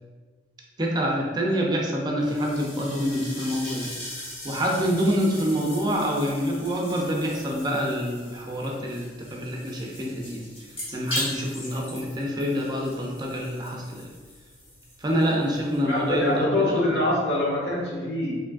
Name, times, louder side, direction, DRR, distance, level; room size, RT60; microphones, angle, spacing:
voice 1, 0.8-3.9 4.4-10.5 10.9-14.1 15.0-17.0, equal, 25° right, -1 dB, 0.5 m, -26 dB
sound 1, 2.2-16.4, left 1 dB, 30° left, 1.0 m, -39 dB
voice 2, 15.8-18.3, left 1 dB, 70° left, -5 dB, 1.2 m, -24 dB
4.8 x 3.1 x 2.5 m, 1.5 s
head